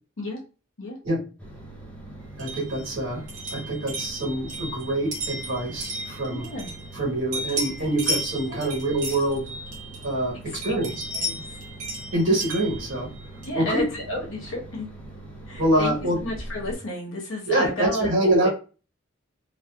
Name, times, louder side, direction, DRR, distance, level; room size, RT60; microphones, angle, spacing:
sound 1, 1.4-16.8, right 1 dB, 5° left, 0.6 m, -42 dB
sound 2, 2.4-7.0 7.3-10.2 10.6-13.7, right 1 dB, 40° right, 0.9 m, -34 dB
voice 1, 2.4-6.5 6.9-9.5 10.0-10.9 12.1-13.1 13.5-13.8 15.6-16.2 17.5-18.5, right 1 dB, 70° right, -3 dB, 1.2 m, -25 dB
voice 2, 6.3-6.7 8.5-8.6 11.1-11.6 13.4-14.9 15.5-15.9 16.2-18.1 18.4-18.5, left 1 dB, 85° left, -2 dB, 1.1 m, -31 dB
2.6 x 2.3 x 2.2 m, 0.34 s
head